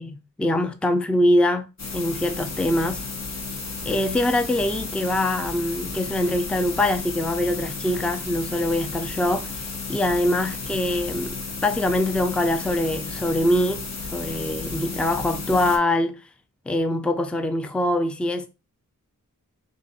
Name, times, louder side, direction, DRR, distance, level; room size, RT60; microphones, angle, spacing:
voice 1, 0.0-1.7 1.9-3.0 3.9-11.4 11.6-13.8 14.1-16.2 16.7-18.5, left 1 dB, 5° left, 0.4 m, -23 dB
sound 1, 1.8-15.8, left 4 dB, 55° left, 0.9 m, -33 dB
3.7 x 2.5 x 3.9 m
wide cardioid pair, 95°, 33 cm